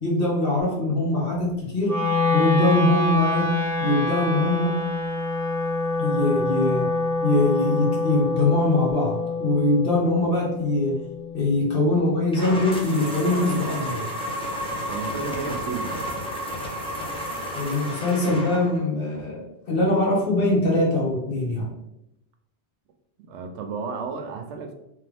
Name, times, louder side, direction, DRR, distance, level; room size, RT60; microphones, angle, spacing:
voice 1, 0.0-2.0 2.3-3.5 3.8-4.8 6.0-6.9 7.2-11.0 11.3-14.1 17.5-21.7, left 2 dB, 55° left, -3 dB, 1.3 m, -22 dB
Wind instrument woodwind instrument, 1.8-12.0, left 2 dB, 15° right, 1.4 m, -26 dB
sound 1, 12.3-18.9, equal, 5° left, 0.6 m, -32 dB
voice 2, 14.9-16.3 23.3-24.7, right 5 dB, 80° right, 5 dB, 0.9 m, -33 dB
3.4 x 3.3 x 3.3 m, 0.85 s
omnidirectional pair, 1.2 m